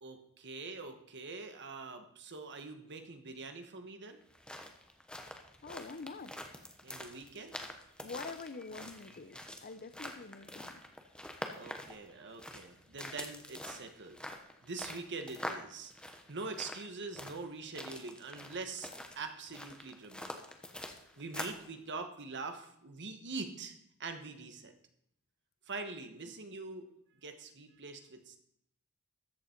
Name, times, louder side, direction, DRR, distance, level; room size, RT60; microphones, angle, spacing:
voice 1, 0.0-4.2 6.8-7.6 11.6-14.2 14.6-20.4 21.2-23.7 24.0-24.7 25.7-26.9 27.2-28.4, right 3 dB, 55° right, 7 dB, 1.3 m, -44 dB
sound 1, 4.2-21.7, left 1 dB, 5° left, 1.0 m, -46 dB
voice 2, 5.6-6.3 8.0-10.8, left 4 dB, 45° left, 12 dB, 0.7 m, -45 dB
13.5 x 8.1 x 4.5 m, 0.72 s
head